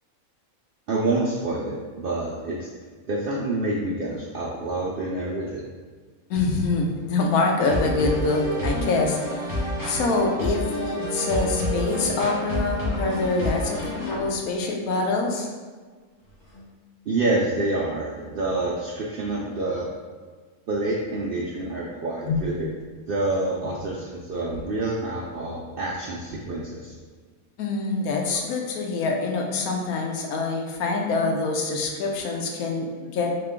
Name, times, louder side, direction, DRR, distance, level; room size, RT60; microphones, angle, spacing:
voice 1, 0.9-2.7 3.1-5.6 17.1-19.9 20.7-22.7 23.1-26.9, right 2 dB, 75° right, -4 dB, 0.5 m, -27 dB
voice 2, 6.3-15.5 22.3-22.4 27.6-33.3, left 3 dB, 90° left, 1 dB, 1.1 m, -25 dB
sound 1, 7.6-14.1, left 1 dB, 15° left, 1.0 m, -28 dB
sound 2, 13.7-14.6 16.0-16.7 17.7-17.8, left 1 dB, 55° left, 1.2 m, -43 dB
3.4 x 2.9 x 3.6 m, 1.5 s
omnidirectional pair, 1.5 m